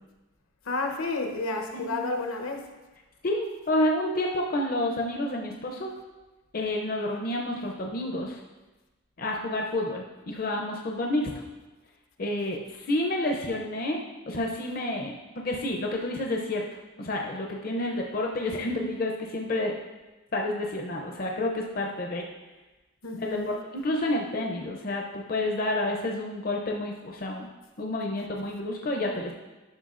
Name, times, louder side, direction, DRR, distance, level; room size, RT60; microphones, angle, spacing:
voice 1, 0.7-2.7 23.0-23.5, left 2 dB, 75° left, 4 dB, 0.8 m, -31 dB
voice 2, 3.2-5.9 6.5-8.4 9.2-11.3 12.2-16.6 17.0-19.7 20.3-22.2 23.2-23.4 23.7-27.5 27.8-29.3, left 1 dB, 40° left, 0 dB, 0.6 m, -29 dB
11.0 x 5.9 x 2.5 m, 1.1 s
head